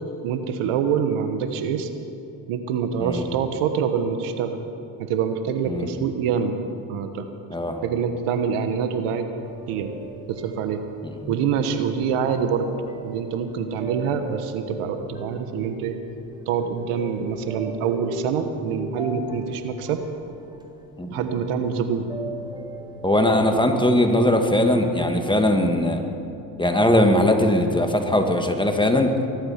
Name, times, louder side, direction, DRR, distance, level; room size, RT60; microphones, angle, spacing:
voice 1, 0.2-1.9 2.5-4.6 5.0-6.6 6.9-7.3 7.8-9.3 9.7-9.9 10.3-10.8 11.3-12.7 13.0-16.0 16.5-20.0 21.1-22.1, right 7 dB, 85° right, 8 dB, 1.3 m, -25 dB
voice 2, 7.5-7.8 11.0-11.1 21.0-21.1 23.0-26.0 26.6-29.1, left 1 dB, 10° left, 4 dB, 1.9 m, -20 dB
sound 1, 9.4-24.1, right 1 dB, 10° right, 2.4 m, -39 dB
20.5 x 12.0 x 5.8 m, 2.8 s
supercardioid pair, 70°, 50 cm